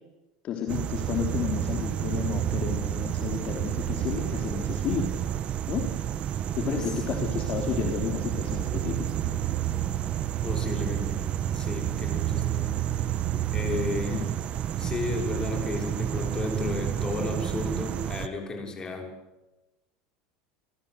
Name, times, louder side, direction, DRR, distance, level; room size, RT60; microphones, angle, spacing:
voice 1, 0.4-5.1 5.7-5.9 6.5-9.4 14.1-14.3, left 8 dB, 40° left, 3 dB, 3.4 m, -32 dB
sound 1, 0.7-18.3, right 10 dB, 40° right, 1.4 m, -29 dB
voice 2, 10.4-12.8 13.5-14.3 14.8-19.1, left 3 dB, 20° left, 3 dB, 6.2 m, -33 dB
30.0 x 18.5 x 8.0 m, 1.1 s
supercardioid pair, 125°, 3 cm